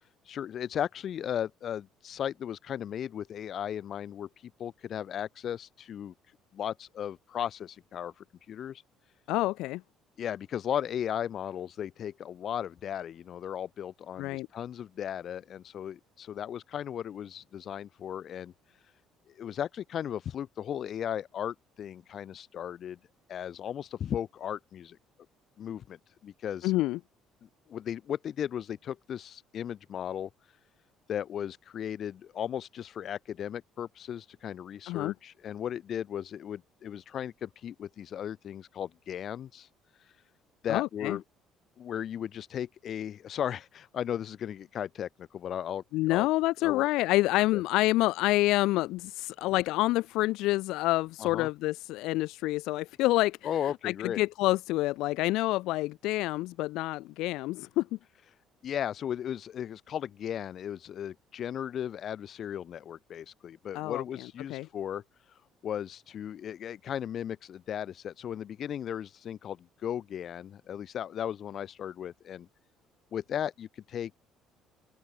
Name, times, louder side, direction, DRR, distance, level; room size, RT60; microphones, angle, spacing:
voice 1, 0.3-6.1 6.5-8.8 10.2-18.5 19.3-23.0 23.3-25.0 25.6-26.7 27.7-30.3 31.1-39.7 40.6-41.2 41.8-46.3 46.6-46.9 47.5-47.6 51.2-51.5 53.4-54.2 58.6-65.0 65.6-72.5 73.1-74.1, left 9 dB, 40° left, 1.7 m, -36 dB
voice 2, 9.3-9.8 14.2-14.5 26.6-27.0 34.9-35.1 40.7-41.2 45.9-53.4 53.8-58.0 63.7-64.0 64.5-64.7, left 18 dB, 75° left, 0.8 m, -27 dB
open air
cardioid pair, 170°, 0 cm